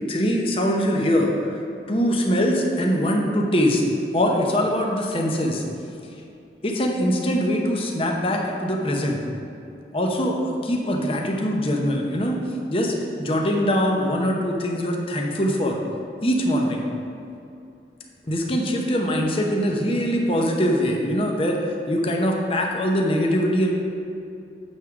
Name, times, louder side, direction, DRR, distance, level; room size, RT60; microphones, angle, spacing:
voice 1, 0.1-1.6 1.9-3.8 4.1-5.6 6.6-9.2 9.9-12.4 12.7-12.9 13.2-15.8 16.2-16.8 18.3-21.6 21.9-23.7, equal, 30° left, 0 dB, 0.8 m, -22 dB
9.2 x 3.7 x 5.9 m, 2.6 s
head